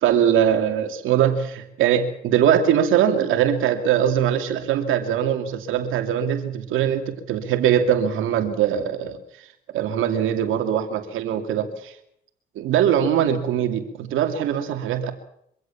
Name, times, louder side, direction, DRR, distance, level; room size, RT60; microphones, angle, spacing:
voice 1, 0.0-9.2 9.7-11.9 12.6-15.1, right 9 dB, 90° right, 7 dB, 2.5 m, -21 dB
24.5 x 16.0 x 7.2 m, 0.73 s
cardioid pair, 90°, 20 cm